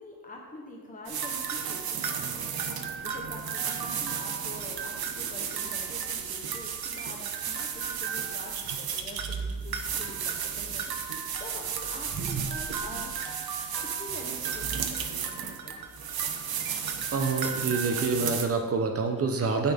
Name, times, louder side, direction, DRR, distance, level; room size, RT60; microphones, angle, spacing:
voice 1, 0.0-13.2 13.8-15.9, left 1 dB, 20° left, -1 dB, 1.1 m, -45 dB
sound 1, 1.1-18.5, right 7 dB, 85° right, 0.9 m, -33 dB
voice 2, 17.1-19.7, right 4 dB, 40° right, 4 dB, 0.8 m, -27 dB
9.6 x 8.8 x 3.6 m, 1.3 s
wide cardioid pair, 170°, 36 cm